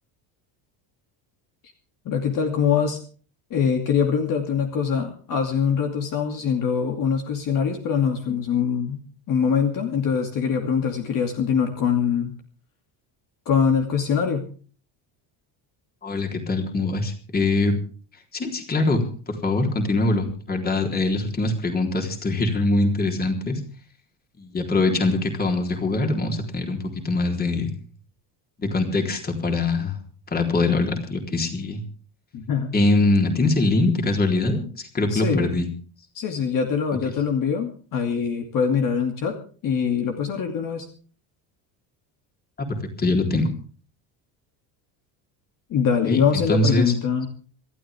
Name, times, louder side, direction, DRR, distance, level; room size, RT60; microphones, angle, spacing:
voice 1, 2.0-3.0 3.5-9.0 9.3-12.3 13.5-14.5 32.3-32.7 35.1-35.5 36.1-39.4 39.6-40.9 45.7-47.3, left 6 dB, 45° left, 4 dB, 2.7 m, -23 dB
voice 2, 16.0-17.8 18.3-23.6 24.4-27.7 28.6-30.0 30.3-31.8 32.7-35.7 42.6-42.7 43.0-43.5 46.1-46.9, left 2 dB, 20° left, 3 dB, 3.7 m, -23 dB
26.5 x 12.5 x 3.6 m, 0.40 s
cardioid pair, 155°, 45 cm